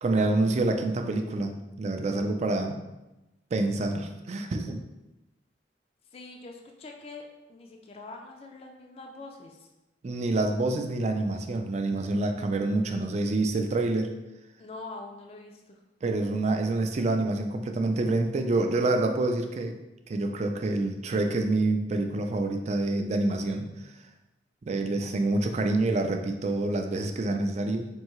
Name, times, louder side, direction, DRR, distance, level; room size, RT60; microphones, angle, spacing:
voice 1, 0.0-2.7 3.5-4.8 10.0-14.1 16.0-19.8 20.1-23.9 24.6-27.9, right 2 dB, 40° right, 5 dB, 0.3 m, -27 dB
voice 2, 6.1-9.7 14.6-15.8, left 3 dB, 35° left, 2 dB, 0.4 m, -44 dB
4.5 x 2.7 x 3.0 m, 1.0 s
head